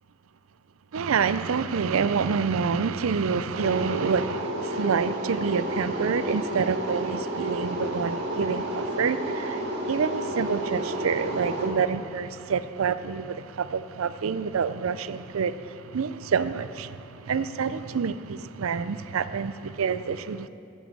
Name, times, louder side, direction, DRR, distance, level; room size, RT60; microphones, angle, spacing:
voice 1, 0.9-20.5, right 6 dB, 75° right, 0.5 m, -27 dB
sound 1, 3.5-11.7, right 1 dB, 50° right, 2.0 m, -31 dB
15.5 x 7.3 x 6.2 m
head